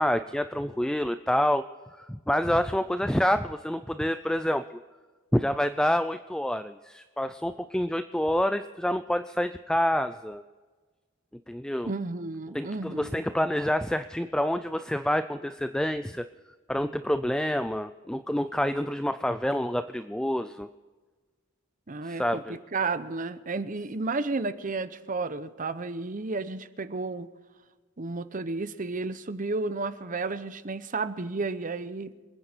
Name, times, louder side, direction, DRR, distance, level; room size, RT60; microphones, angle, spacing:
voice 1, 0.0-1.7 1.9-4.6 5.3-10.4 11.5-11.9 12.5-16.2 16.7-20.7 22.0-22.6, left 1 dB, 5° left, 11 dB, 0.4 m, -27 dB
voice 2, 11.9-13.2 21.9-27.3 28.0-32.1, right 3 dB, 40° right, 12 dB, 0.8 m, -32 dB
26.5 x 9.9 x 4.5 m, 1.4 s
head